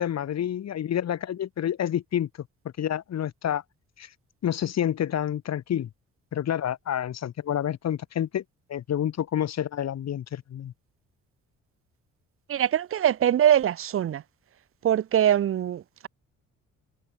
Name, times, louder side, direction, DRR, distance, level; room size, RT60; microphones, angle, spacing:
voice 1, 0.0-2.3 2.8-3.6 4.0-4.1 4.4-5.9 6.3-8.4 8.7-10.7, left 10 dB, 60° left, 1.8 m, -28 dB
voice 2, 12.5-14.2 14.8-16.1, right 10 dB, 45° right, 0.6 m, -23 dB
cardioid pair, 90°, 30 cm